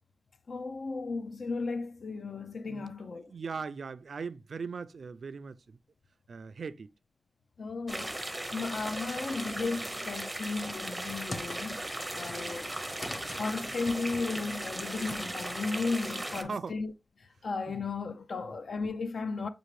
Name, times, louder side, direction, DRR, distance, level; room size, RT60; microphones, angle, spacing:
voice 1, 0.5-3.3 7.6-8.2 8.5-11.9 12.1-12.7 13.3-16.9 17.2-19.5, left 4 dB, 60° left, 0.4 m, -35 dB
voice 2, 3.3-5.8 6.3-6.9 12.2-12.3 16.4-16.8 17.7-17.8, right 5 dB, 65° right, 0.3 m, -39 dB
sound 1, 7.9-16.4, right 1 dB, 10° right, 0.6 m, -37 dB
sound 2, 10.6-15.8, left 2 dB, 45° left, 0.8 m, -45 dB
6.8 x 2.5 x 3.1 m
wide cardioid pair, 125°, 0 cm